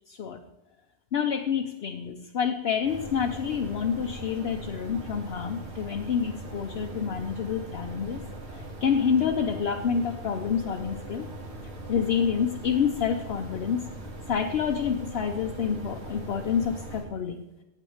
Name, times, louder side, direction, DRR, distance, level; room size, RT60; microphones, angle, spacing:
voice 1, 0.1-0.4 1.1-8.2 8.5-11.3 11.9-13.8 14.3-17.4, left 7 dB, 70° left, 3 dB, 1.0 m, -28 dB
sound 1, 2.8-17.0, right 1 dB, 75° right, 2.1 m, -40 dB
8.8 x 6.1 x 7.1 m, 0.96 s
omnidirectional pair, 1.1 m